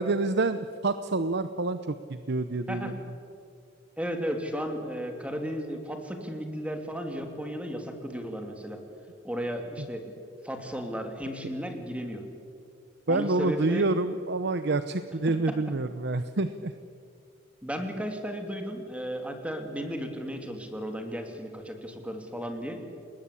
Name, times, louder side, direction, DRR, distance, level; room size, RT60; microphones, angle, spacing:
voice 1, 0.0-2.9 9.8-9.9 13.1-16.7, right 2 dB, 60° right, 11 dB, 0.8 m, -27 dB
voice 2, 4.0-8.8 9.2-10.2 10.4-12.2 13.1-13.9 15.5-15.6 17.6-22.8, equal, 5° right, 4 dB, 3.0 m, -34 dB
29.0 x 20.5 x 8.5 m, 2.3 s
head